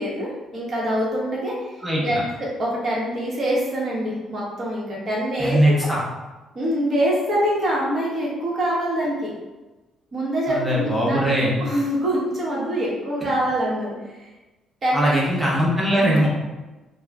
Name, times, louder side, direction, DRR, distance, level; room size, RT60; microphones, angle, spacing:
voice 1, 0.0-5.9 6.5-9.3 10.1-14.2 14.8-15.2, equal, 45° right, -4 dB, 1.0 m, -25 dB
voice 2, 5.4-6.0 10.5-11.5 14.9-16.3, equal, ahead, -6 dB, 0.9 m, -20 dB
2.3 x 2.0 x 3.5 m, 1.1 s
cardioid pair, 90°, 0 cm